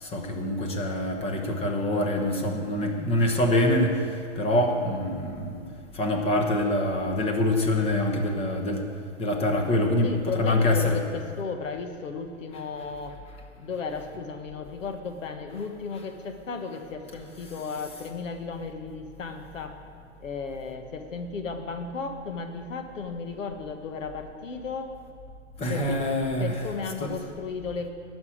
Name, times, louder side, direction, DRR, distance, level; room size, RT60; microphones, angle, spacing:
voice 1, 0.0-4.1 4.4-5.6 5.9-8.8 9.2-11.0 25.6-26.5 27.0-27.1, left 1 dB, 15° left, 3 dB, 1.1 m, -25 dB
voice 2, 10.0-13.1 13.6-19.8 20.2-24.9 25.7-26.0 26.4-27.9, left 4 dB, 90° left, 6 dB, 1.4 m, -35 dB
11.0 x 6.1 x 8.6 m, 2.2 s
hypercardioid pair, 145°, 37 cm